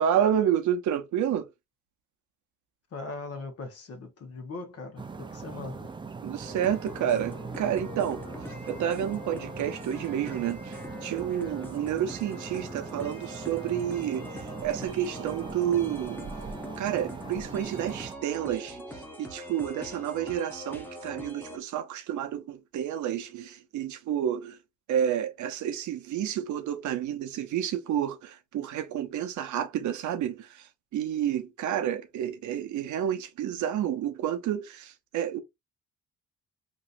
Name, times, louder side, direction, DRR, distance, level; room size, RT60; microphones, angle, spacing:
voice 1, 0.0-1.5 6.2-8.2 8.7-16.3 16.8-24.6 24.9-35.4, right 10 dB, 75° right, 0.7 m, -30 dB
voice 2, 2.9-6.0, left 3 dB, 55° left, 1.1 m, -40 dB
sound 1, 5.0-18.1, right 4 dB, 15° right, 0.4 m, -41 dB
sound 2, 6.4-21.6, left 1 dB, 5° left, 0.9 m, -43 dB
2.9 x 2.6 x 2.5 m
cardioid pair, 90°, 30 cm